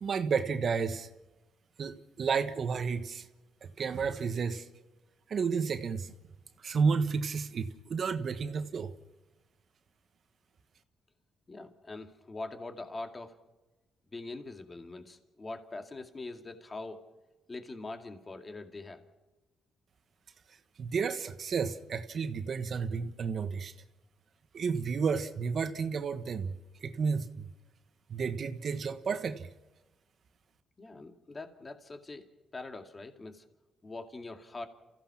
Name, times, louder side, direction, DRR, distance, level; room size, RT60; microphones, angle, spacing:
voice 1, 0.0-1.1 1.8-3.2 3.6-4.6 5.3-6.1 6.6-8.9 20.8-23.7 24.5-26.5 26.8-27.5 28.1-29.5, right 5 dB, 50° right, 9 dB, 1.3 m, -31 dB
voice 2, 11.5-13.4 14.1-17.1 17.5-19.0 30.8-33.5 33.8-34.7, left 2 dB, 25° left, 6 dB, 2.3 m, -43 dB
28.0 x 16.0 x 5.9 m, 1.1 s
cardioid pair, 90°, 0 cm